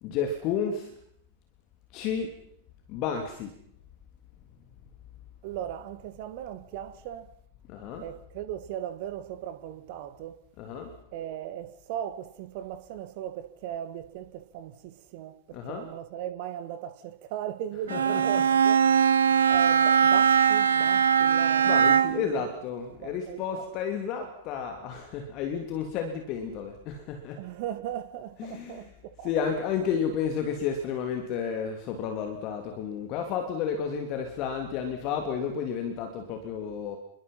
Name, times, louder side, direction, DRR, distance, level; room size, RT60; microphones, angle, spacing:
voice 1, 0.0-0.9 1.9-2.4 2.9-3.5 7.7-8.1 10.6-10.9 15.5-15.9 17.9-18.4 21.6-27.4 28.4-28.9 29.2-37.0, left 7 dB, 40° left, 3.2 m, -32 dB
voice 2, 5.4-7.3 8.0-10.4 11.1-18.8 19.5-22.3 23.0-23.6 27.4-28.9 29.2-29.3, right 11 dB, 50° right, 2.1 m, -37 dB
Bowed string instrument, 17.9-22.3, right 7 dB, 70° right, 1.2 m, -21 dB
28.0 x 23.0 x 5.8 m
figure-of-eight pair, 90°, 0 cm